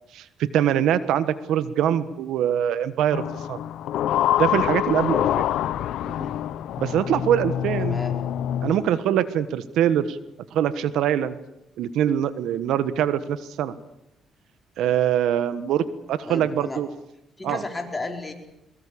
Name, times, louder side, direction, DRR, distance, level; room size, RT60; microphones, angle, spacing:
voice 1, 0.0-3.6 4.4-5.4 6.8-8.0 8.6-10.2 10.5-11.4 11.8-13.8 14.8-16.9 17.4-17.6, right 10 dB, 85° right, 14 dB, 1.3 m, -23 dB
sound 1, 3.1-8.9, left 11 dB, 80° left, 0.9 m, -26 dB
voice 2, 6.0-6.3 7.8-8.1 16.3-16.8 17.4-18.3, left 3 dB, 20° left, 3 dB, 5.0 m, -33 dB
23.0 x 21.5 x 8.6 m, 0.86 s
cardioid pair, 90°, 0 cm